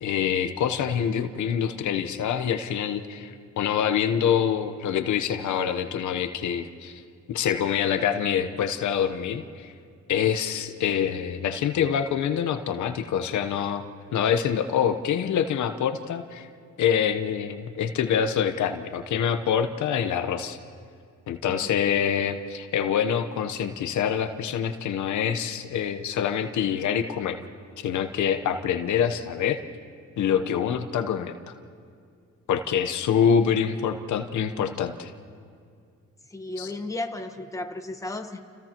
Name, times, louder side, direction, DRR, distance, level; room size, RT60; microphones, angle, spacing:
voice 1, 0.0-7.0 7.3-9.7 10.1-13.8 14.1-16.5 16.8-20.6 21.3-27.4 27.8-29.6 30.2-31.5 32.5-35.1 36.6-36.7, left 8 dB, 70° left, 8 dB, 1.0 m, -25 dB
voice 2, 36.3-38.4, left 2 dB, 10° left, 5 dB, 1.3 m, -34 dB
29.5 x 29.5 x 3.0 m, 2.3 s
cardioid pair, 90°, 30 cm